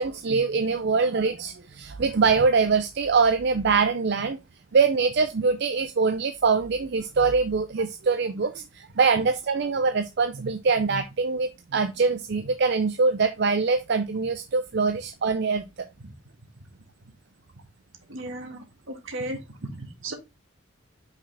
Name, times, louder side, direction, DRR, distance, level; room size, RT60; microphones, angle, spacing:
voice 1, 0.0-4.4 4.7-15.7, right 4 dB, 55° right, 0.5 m, -23 dB
voice 2, 18.1-19.4 19.7-20.1, right 1 dB, 75° right, 1.7 m, -35 dB
5.7 x 4.9 x 3.3 m
head